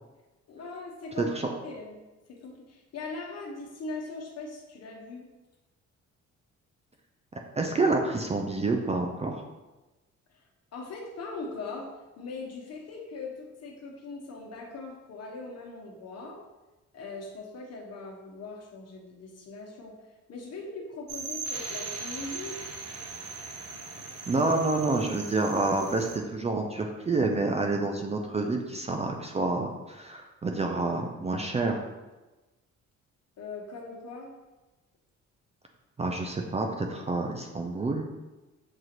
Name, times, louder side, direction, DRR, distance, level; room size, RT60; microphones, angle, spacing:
voice 1, 0.5-1.3 1.6-2.0 2.3-5.2 10.7-11.9 12.2-16.4 16.9-19.9 20.3-22.6 33.4-34.3, left 3 dB, 55° left, -1 dB, 1.0 m, -40 dB
voice 2, 7.5-9.4 24.3-31.8 36.0-38.0, right 3 dB, 20° right, 2 dB, 0.4 m, -28 dB
sound 1, 21.1-26.2, right 4 dB, 55° right, 0.7 m, -39 dB
6.4 x 2.4 x 2.9 m, 1.1 s
cardioid pair, 90°, 30 cm